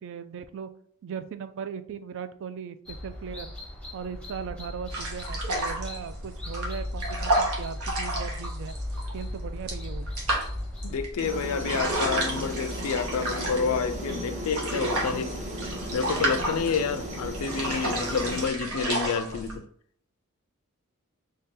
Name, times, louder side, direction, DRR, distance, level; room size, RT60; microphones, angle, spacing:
voice 1, 0.0-0.7 1.0-3.5 3.9-8.8 9.1-10.1, right 6 dB, 60° right, 0.3 m, -38 dB
sound 1, 2.9-11.1, left 1 dB, 5° left, 0.7 m, -37 dB
sound 2, 4.9-19.5, right 1 dB, 85° right, 1.1 m, -32 dB
voice 2, 10.8-15.3 15.9-19.7, left 6 dB, 80° left, 0.4 m, -29 dB
sound 3, 11.2-18.5, equal, 35° right, 0.7 m, -35 dB
3.3 x 2.8 x 3.6 m
head